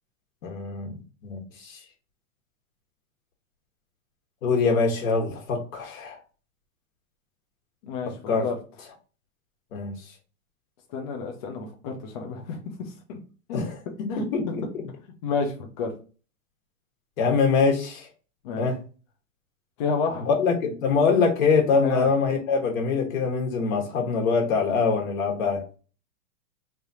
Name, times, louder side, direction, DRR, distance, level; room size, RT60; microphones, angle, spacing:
voice 1, 0.4-1.8 4.4-6.2 8.0-8.5 9.7-10.1 13.5-13.8 14.2-14.8 17.2-18.1 18.6-18.8 20.2-25.7, left 5 dB, 65° left, 1 dB, 1.4 m, -24 dB
voice 2, 10.9-12.6 13.1-13.2 13.5-13.6 14.1-14.2 15.2-15.9 18.4-18.6 19.8-20.3 21.8-22.1, left 4 dB, 30° left, 2 dB, 0.5 m, -29 dB
3.3 x 2.7 x 4.6 m, 0.35 s
supercardioid pair, 165°, 44 cm